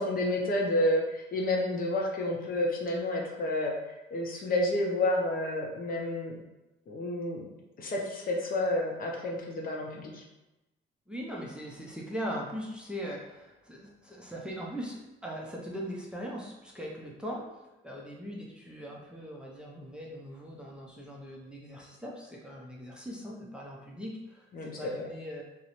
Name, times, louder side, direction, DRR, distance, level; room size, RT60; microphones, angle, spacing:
voice 1, 0.0-3.7 4.1-6.4 6.9-7.4 7.8-10.2 24.5-25.1, left 1 dB, 45° left, 0 dB, 0.5 m, -30 dB
voice 2, 11.1-17.5 17.8-25.4, equal, 5° right, -3 dB, 0.5 m, -40 dB
2.4 x 2.0 x 2.9 m, 0.99 s
cardioid pair, 90°, 20 cm